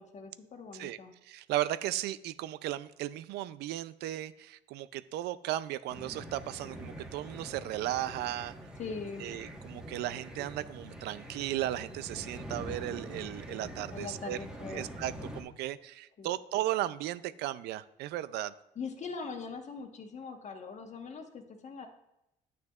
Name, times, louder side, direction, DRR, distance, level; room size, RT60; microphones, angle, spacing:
voice 1, 0.0-1.1 8.8-9.3 13.9-14.8 16.2-16.3 18.7-21.9, left 5 dB, 45° left, 5 dB, 1.2 m, -41 dB
voice 2, 1.2-8.6 9.2-14.4 14.7-18.5, right 14 dB, 80° right, 15 dB, 0.4 m, -36 dB
sound 1, 5.9-15.4, equal, 5° right, 1.3 m, -45 dB
9.4 x 9.2 x 2.4 m, 0.86 s
cardioid pair, 110°, 17 cm